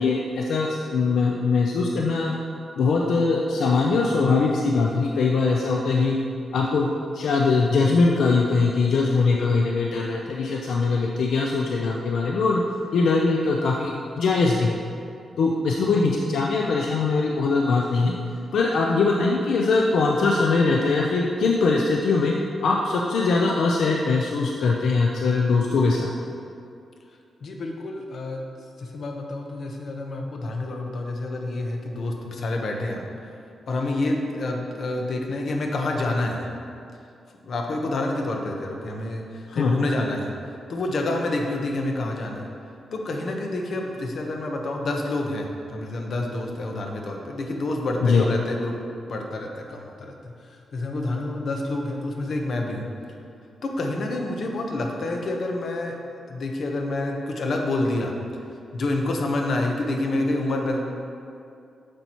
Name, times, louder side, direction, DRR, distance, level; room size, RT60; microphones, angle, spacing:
voice 1, 0.0-2.3 2.8-6.2 6.5-6.9 7.1-12.6 12.9-14.8 15.4-18.1 18.5-22.3 22.6-26.1 39.6-39.7 48.0-48.2, left 4 dB, 80° left, -1 dB, 0.6 m, -21 dB
voice 2, 27.4-28.5 28.8-33.1 33.7-36.5 37.4-40.3 40.7-42.5 42.9-48.7 49.1-52.9 53.6-56.0 56.3-58.1 58.7-60.9, left 2 dB, 60° left, 1 dB, 1.0 m, -28 dB
9.7 x 6.9 x 3.0 m, 2.5 s
cardioid pair, 110°, 0 cm